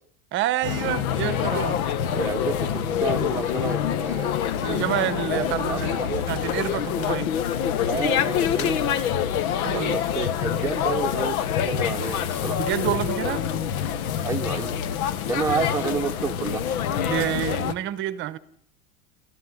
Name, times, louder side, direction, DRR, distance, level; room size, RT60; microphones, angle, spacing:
voice 1, 0.3-1.8 4.6-7.3 9.6-10.0 12.6-13.5 17.1-18.4, right 13 dB, 25° right, 1.0 m, -28 dB
sound 1, 0.6-17.7, left 9 dB, 80° left, 1.8 m, -26 dB
voice 2, 2.1-4.8 5.4-6.2 7.8-8.8 9.7-11.4 11.6-12.6 14.2-14.8 15.3-16.6, right 5 dB, 5° right, 1.0 m, -30 dB
28.0 x 14.0 x 9.8 m
supercardioid pair, 175°, 43 cm